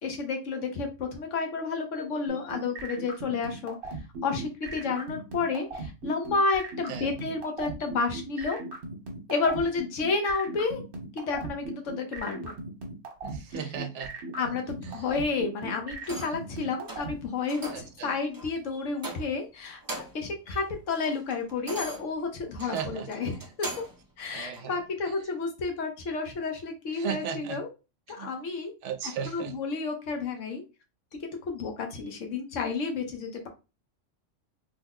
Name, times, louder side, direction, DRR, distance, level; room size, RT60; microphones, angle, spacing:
voice 1, 0.0-3.8 4.2-8.6 9.3-10.8 11.1-12.6 13.6-13.7 14.4-19.8 20.1-23.7 24.2-27.7 28.1-28.7 29.3-30.6 31.2-33.5, left 4 dB, 80° left, 1.2 m, -31 dB
sound 1, 2.3-17.1, right 2 dB, 50° right, 1.1 m, -37 dB
voice 2, 6.9-7.3 13.2-14.1 14.8-15.0 17.7-18.1 22.6-23.1 24.3-24.8 26.9-27.6 28.2-28.3 28.8-29.5, right 8 dB, 75° right, 0.9 m, -36 dB
sound 2, 16.0-16.5 16.9-17.1 17.5-17.9 18.3-18.5 19.0-19.5 19.7-20.3 20.7-24.0 24.5-24.7, right 1 dB, 30° right, 0.4 m, -40 dB
3.4 x 2.1 x 3.6 m
omnidirectional pair, 1.3 m